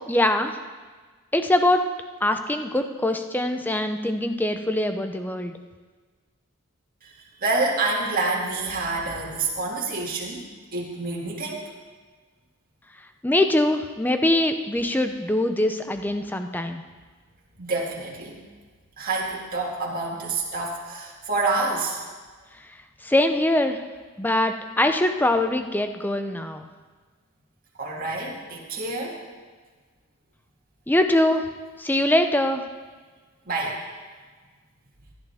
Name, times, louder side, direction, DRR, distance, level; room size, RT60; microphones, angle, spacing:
voice 1, 0.1-0.6 1.3-1.8 2.2-5.5 13.2-16.8 23.0-23.8 24.2-26.7 30.9-31.4 31.8-32.6, left 1 dB, 10° left, 7 dB, 0.6 m, -23 dB
voice 2, 7.4-10.4 10.7-11.6 17.6-18.4 19.0-22.0 27.8-29.2 33.5-33.8, right 3 dB, 40° right, -3 dB, 2.4 m, -27 dB
16.0 x 11.5 x 3.5 m, 1.4 s
head